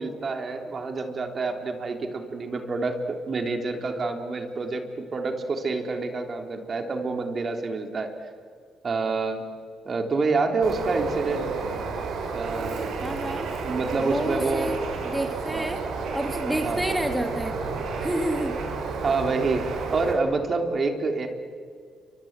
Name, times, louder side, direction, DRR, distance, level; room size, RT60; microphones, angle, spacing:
voice 1, 0.0-8.1 8.8-9.4 9.8-11.5 12.3-12.9 13.6-14.7 15.5-15.7 16.6-16.8 19.0-21.3, right 3 dB, 40° right, 5 dB, 3.4 m, -27 dB
Bird, 10.6-20.1, right 4 dB, 75° right, 6.0 m, -31 dB
voice 2, 13.0-13.5 14.0-15.8 16.1-17.5 18.0-18.6, right 1 dB, 5° right, 4 dB, 2.5 m, -29 dB
29.0 x 25.0 x 8.1 m, 2.1 s
cardioid pair, 90°, 0 cm